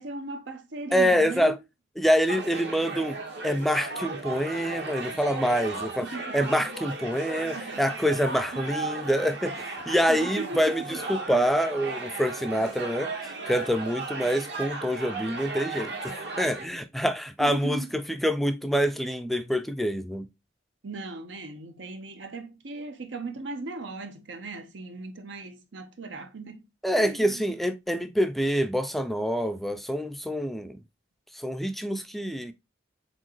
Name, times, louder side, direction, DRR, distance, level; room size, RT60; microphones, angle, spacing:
voice 1, 0.0-1.6 6.0-6.7 7.5-7.9 8.5-8.7 10.1-11.0 11.3-11.5 17.4-17.9 20.8-26.6 26.9-27.5, right 3 dB, 85° right, 0.9 m, -38 dB
voice 2, 0.9-1.6 2.0-3.2 3.4-6.1 6.3-13.1 13.5-20.3 26.8-30.8 31.3-32.5, equal, ahead, 0.3 m, -26 dB
sound 1, 2.3-16.7, right 3 dB, 65° right, 1.3 m, -36 dB
4.4 x 3.8 x 3.0 m
head